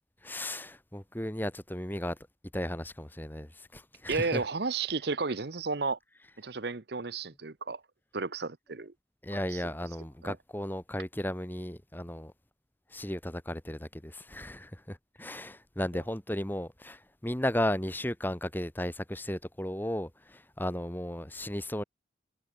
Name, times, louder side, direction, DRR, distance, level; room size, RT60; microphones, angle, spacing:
voice 1, 0.2-2.2 2.5-4.4 9.2-12.3 12.9-21.8, left 1 dB, 10° left, 1.6 m, -35 dB
voice 2, 4.1-6.0 6.4-7.8 8.1-8.9 10.2-10.4, right 4 dB, 55° right, 0.9 m, -32 dB
head